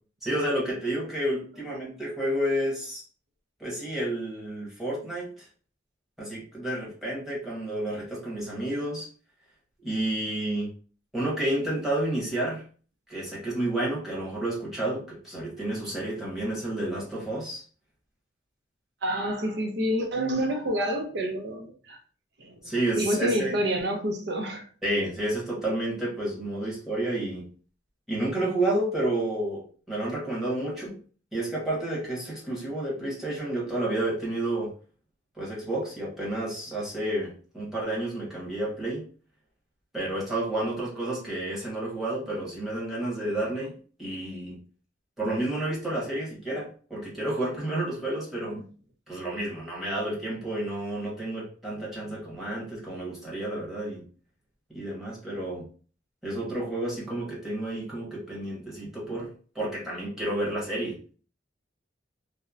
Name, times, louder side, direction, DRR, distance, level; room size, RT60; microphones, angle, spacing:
voice 1, 0.2-3.0 3.6-5.4 6.2-9.1 9.8-10.7 11.1-12.6 13.1-17.6 22.6-23.6 24.8-27.4 28.1-29.6 29.9-31.0 31.3-34.7 35.4-39.0 39.9-43.7 44.0-44.6 45.2-48.6 49.1-54.0 54.7-55.7 56.2-59.3 59.5-61.0, right 1 dB, ahead, 1.0 m, -30 dB
voice 2, 19.0-22.0 22.4-24.7, equal, 60° right, 0.5 m, -28 dB
2.7 x 2.0 x 2.4 m
head